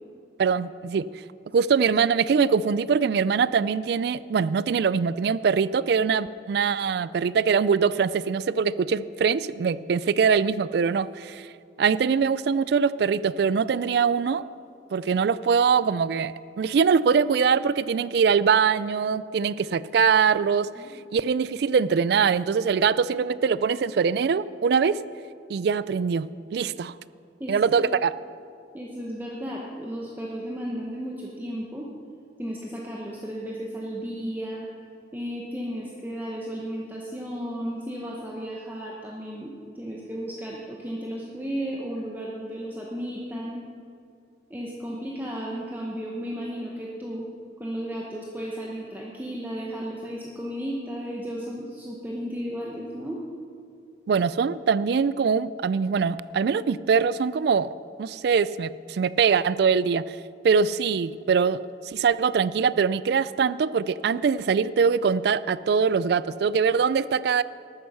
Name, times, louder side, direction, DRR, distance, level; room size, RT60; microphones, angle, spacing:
voice 1, 0.4-1.1 1.5-11.5 11.8-14.4 14.9-20.7 21.1-25.0 25.5-26.9 27.5-28.1 54.1-57.7 58.0-60.2 60.4-61.6 61.8-67.4, right 6 dB, 60° right, 17 dB, 0.3 m, -23 dB
voice 2, 27.4-27.8 28.7-31.9 32.4-34.7 35.1-43.7 44.5-47.3 47.6-53.2, equal, 10° right, -3 dB, 1.0 m, -34 dB
12.5 x 9.2 x 5.6 m, 2.5 s
head